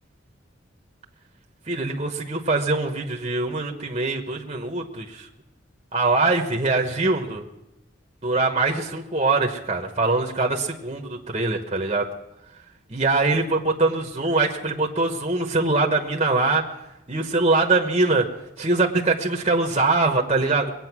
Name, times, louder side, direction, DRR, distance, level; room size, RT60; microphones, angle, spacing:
voice 1, 1.7-5.3 5.9-7.5 8.2-12.1 12.9-16.7 17.1-18.3 18.6-20.7, right 3 dB, 30° right, 2 dB, 1.1 m, -23 dB
22.5 x 8.9 x 6.1 m, 0.90 s
head